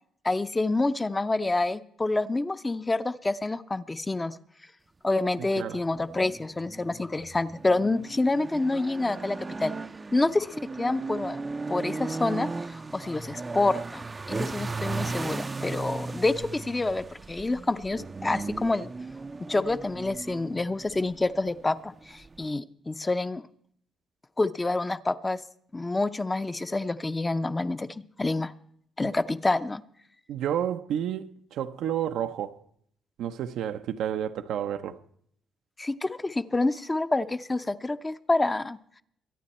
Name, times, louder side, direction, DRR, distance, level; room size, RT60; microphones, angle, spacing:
voice 1, 0.2-4.4 5.0-9.7 10.1-11.4 11.7-18.9 19.5-23.4 24.4-25.4 25.7-27.9 28.2-28.5 29.0-29.8 35.8-38.8, left 2 dB, 20° left, 0.6 m, -27 dB
voice 2, 5.4-5.8 30.3-32.6 33.2-35.0, right 10 dB, 80° right, 0.6 m, -31 dB
sound 1, 5.9-22.5, right 3 dB, 25° right, 0.5 m, -37 dB
23.5 x 8.9 x 4.3 m
cardioid pair, 90°, 0 cm